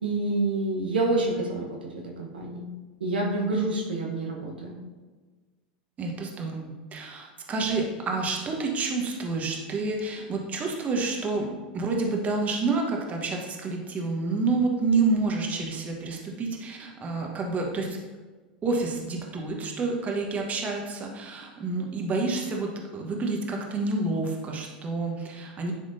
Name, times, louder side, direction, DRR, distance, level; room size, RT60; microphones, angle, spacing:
voice 1, 0.0-2.6 3.0-4.7, right 2 dB, 85° right, -1 dB, 1.1 m, -28 dB
voice 2, 6.0-11.5 11.7-18.0 18.6-25.7, right 3 dB, 30° right, 1 dB, 1.2 m, -29 dB
10.0 x 3.6 x 2.7 m, 1.3 s
hypercardioid pair, 95°, 5 cm